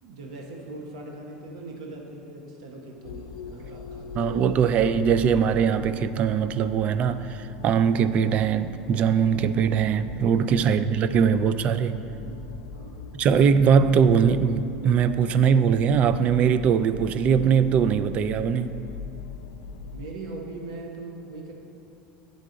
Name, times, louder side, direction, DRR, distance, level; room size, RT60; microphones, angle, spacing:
voice 1, 0.0-4.6 10.5-10.8 12.7-13.1 19.9-21.5, right 2 dB, 90° right, 0.9 m, -40 dB
sound 1, 3.0-20.1, left 5 dB, 85° left, 0.4 m, -41 dB
voice 2, 4.1-12.0 13.1-18.7, right 7 dB, 45° right, 0.3 m, -21 dB
10.5 x 3.9 x 3.8 m
supercardioid pair, 110°, 3 cm